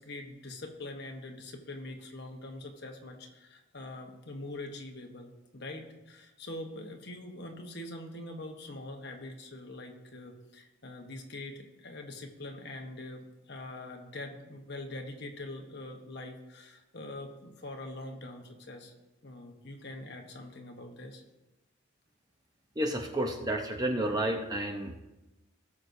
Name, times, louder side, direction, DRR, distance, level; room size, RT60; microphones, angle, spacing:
voice 1, 0.0-18.9 19.2-21.2, left 2 dB, 50° left, 2 dB, 1.1 m, -43 dB
voice 2, 22.8-25.0, right 1 dB, 20° right, 3 dB, 0.7 m, -31 dB
17.5 x 6.4 x 2.7 m, 1.0 s
head